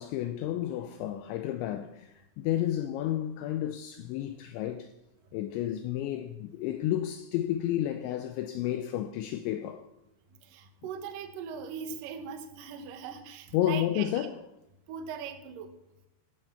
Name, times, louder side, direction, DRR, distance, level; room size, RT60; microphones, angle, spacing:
voice 1, 0.0-4.9 5.3-9.9 13.5-14.4, left 12 dB, 85° left, 2.7 m, -31 dB
voice 2, 10.4-14.3 14.9-15.7, right 6 dB, 75° right, 2.0 m, -40 dB
15.0 x 12.5 x 5.8 m
omnidirectional pair, 5.9 m